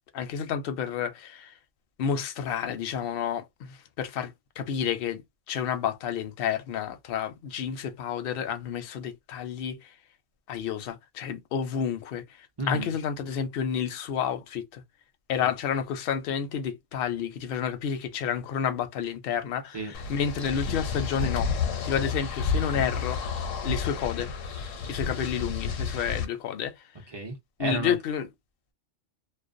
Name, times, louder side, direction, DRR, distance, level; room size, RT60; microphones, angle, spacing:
voice 1, 0.1-1.5 2.0-5.2 5.5-9.8 10.5-12.2 12.7-14.8 15.3-21.5 21.8-23.3 23.6-24.3 24.9-26.7 27.6-28.3, left 8 dB, 60° left, 0.6 m, -30 dB
voice 2, 12.6-12.9 19.7-19.9 27.1-28.0, right 2 dB, 40° right, 0.3 m, -32 dB
sound 1, 19.9-26.3, left 5 dB, 85° left, 1.0 m, -30 dB
2.3 x 2.1 x 2.5 m
omnidirectional pair, 1.3 m